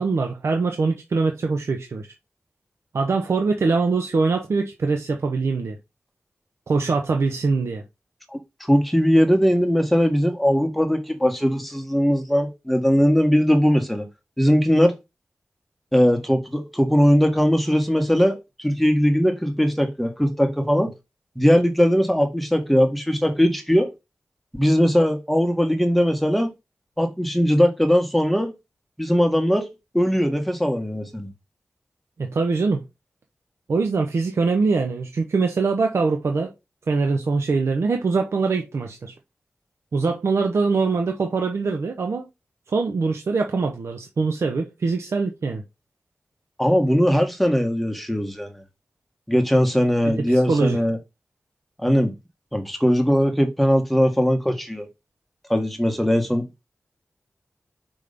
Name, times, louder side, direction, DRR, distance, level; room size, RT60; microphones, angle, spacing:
voice 1, 0.0-2.1 2.9-5.8 6.7-7.8 32.2-32.9 33.7-36.5 36.9-39.1 39.9-42.3 42.7-45.6 50.0-50.8, right 4 dB, 80° right, 0.7 m, -23 dB
voice 2, 8.7-14.1 14.4-14.9 15.9-20.9 21.3-23.9 24.5-26.5 27.0-28.5 29.0-29.7 29.9-31.3 46.6-48.6 49.3-51.0 51.8-52.1 52.5-54.9 55.5-56.7, equal, ahead, 1.5 m, -20 dB
5.4 x 3.4 x 5.1 m
cardioid pair, 55°, 5 cm